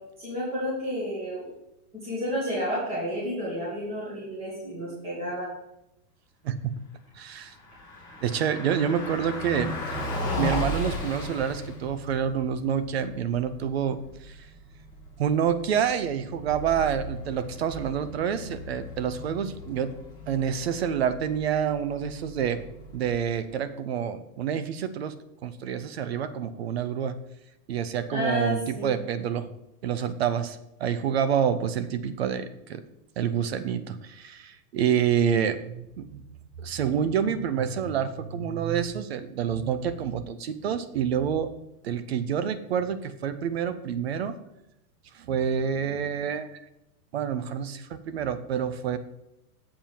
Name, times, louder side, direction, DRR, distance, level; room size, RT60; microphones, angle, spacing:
voice 1, 0.2-1.4 1.9-5.5 28.1-28.9, equal, 10° right, -8 dB, 1.9 m, -31 dB
voice 2, 7.2-7.5 8.2-10.1 10.4-14.4 15.2-19.9 20.3-22.6 22.9-25.1 25.4-27.2 27.7-29.5 29.8-32.8 33.2-36.2 36.6-41.5 41.8-44.4 45.1-46.6 47.1-49.0, right 8 dB, 45° right, 13 dB, 0.5 m, -28 dB
Car passing by, 7.4-23.5, left 2 dB, 10° left, 2.5 m, -37 dB
7.6 x 4.3 x 6.8 m, 0.87 s
supercardioid pair, 170°, 48 cm